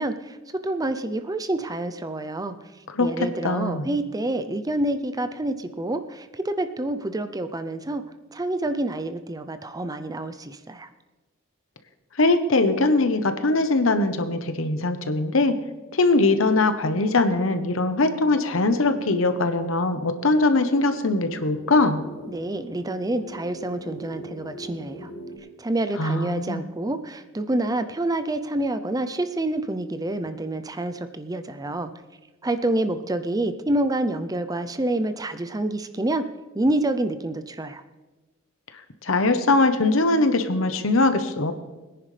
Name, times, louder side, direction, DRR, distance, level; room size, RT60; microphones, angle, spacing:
voice 1, 0.0-2.6 3.0-8.0 8.3-10.9 22.3-25.1 25.6-31.9 32.4-36.2 36.5-37.8, right 1 dB, 20° right, 10 dB, 0.5 m, -27 dB
voice 2, 3.4-3.9 12.2-15.5 15.9-22.0 26.0-26.6 39.0-41.5, left 2 dB, 70° left, 9 dB, 1.0 m, -21 dB
sound 1, 17.7-25.4, equal, 35° left, 1.8 m, -43 dB
22.0 x 10.0 x 3.3 m, 1.2 s
head